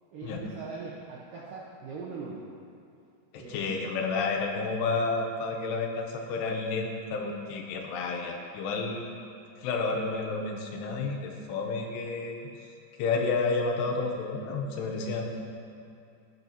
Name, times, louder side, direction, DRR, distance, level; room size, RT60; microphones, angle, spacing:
voice 1, 0.1-2.4 3.4-3.6, right 4 dB, 85° right, -5 dB, 1.9 m, -41 dB
voice 2, 3.3-9.2 9.6-12.4 13.0-15.3, left 4 dB, 80° left, 2 dB, 2.7 m, -30 dB
17.5 x 6.3 x 2.7 m, 2.5 s
omnidirectional pair, 5.1 m